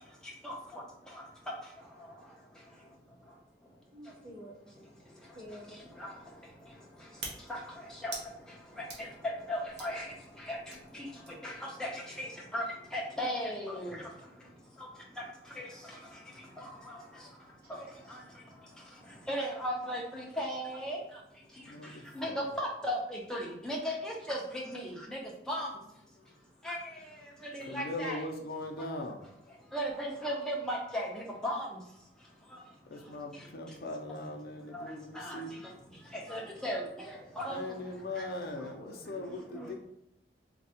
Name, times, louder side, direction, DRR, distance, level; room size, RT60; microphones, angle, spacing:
voice 1, 0.4-0.8 6.0-6.1 7.5-7.6 8.0-8.1 9.0-9.1 9.5-10.1 10.5-11.1 11.4-11.5 11.8-12.6 12.9-14.0 15.6-15.7 16.6-17.0 18.1-18.2 19.3-21.0 22.1-25.2 25.5-25.7 26.6-26.8 27.5-28.2 29.7-31.7 34.7-34.8 35.1-35.4 36.3-37.6, equal, 5° left, -3 dB, 0.6 m, -36 dB
voice 2, 3.9-5.1 5.3-5.7 39.1-39.7, equal, 55° right, -12 dB, 1.1 m, -49 dB
sound 1, 5.3-11.6, right 3 dB, 80° right, 0.8 m, -49 dB
voice 3, 21.7-22.4 26.2-26.3 27.6-29.3 32.9-35.5 37.5-39.7, left 2 dB, 60° left, 2 dB, 0.5 m, -40 dB
3.2 x 2.3 x 2.8 m, 0.77 s
head